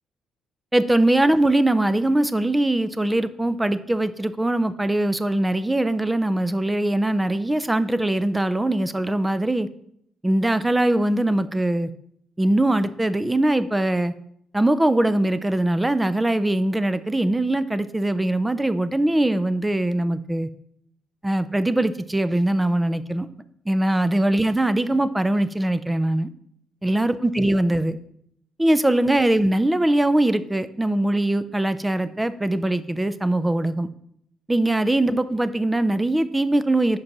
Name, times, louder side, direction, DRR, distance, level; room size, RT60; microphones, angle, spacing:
voice 1, 0.7-9.7 10.2-11.9 12.4-14.1 14.5-20.5 21.2-23.3 23.7-26.3 26.8-28.0 28.6-33.9 34.5-37.0, right 1 dB, 10° right, 14 dB, 0.4 m, -21 dB
5.4 x 5.2 x 5.9 m, 0.72 s
cardioid pair, 90°, 0 cm